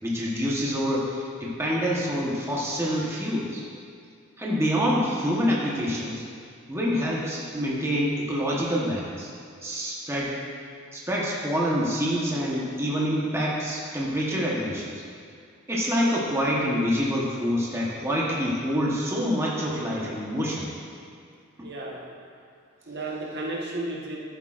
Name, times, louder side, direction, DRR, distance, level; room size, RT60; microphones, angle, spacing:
voice 1, 0.0-3.6 4.4-6.2 6.7-9.3 9.6-10.4 10.9-15.0 15.7-20.7 21.6-21.7, equal, 10° right, -5 dB, 1.0 m, -26 dB
voice 2, 21.6-22.1 22.9-24.2, right 2 dB, 50° right, -3 dB, 1.2 m, -33 dB
12.0 x 8.1 x 2.5 m, 2.2 s
head